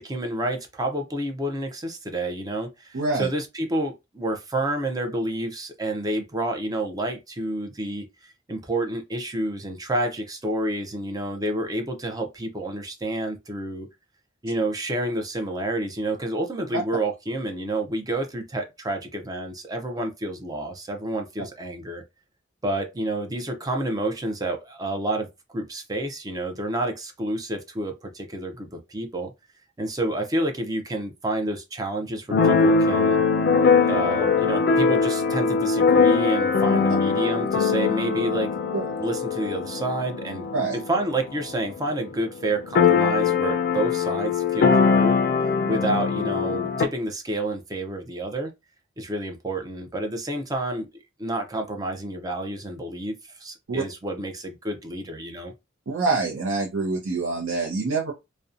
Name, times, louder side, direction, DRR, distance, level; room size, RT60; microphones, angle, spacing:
voice 1, 0.0-13.9 14.4-22.0 22.6-25.3 25.5-29.3 29.8-33.2 33.8-38.5 39.0-40.5 40.7-45.2 45.7-48.5 49.0-50.9 51.2-53.1 53.4-55.5, right 1 dB, 20° right, 0.5 m, -29 dB
voice 2, 2.9-3.3 38.7-38.9 40.5-40.8 45.7-45.8 53.7-53.8 55.9-58.1, right 3 dB, 85° right, 0.6 m, -26 dB
Keyboard (musical), 32.3-41.9 42.1-42.2 42.4-46.9, left 5 dB, 55° left, 0.3 m, -21 dB
2.7 x 2.1 x 2.4 m
head